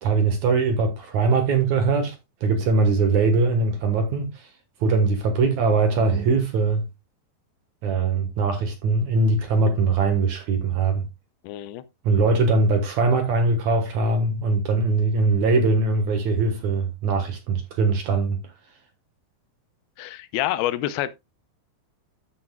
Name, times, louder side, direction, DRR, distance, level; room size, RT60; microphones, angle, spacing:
voice 1, 0.0-4.5 4.8-6.9 7.8-11.1 12.0-18.4, right 3 dB, 60° right, 2.3 m, -21 dB
voice 2, 11.4-11.8 20.0-21.1, left 13 dB, 85° left, 2.6 m, -27 dB
14.0 x 6.2 x 2.3 m
omnidirectional pair, 4.5 m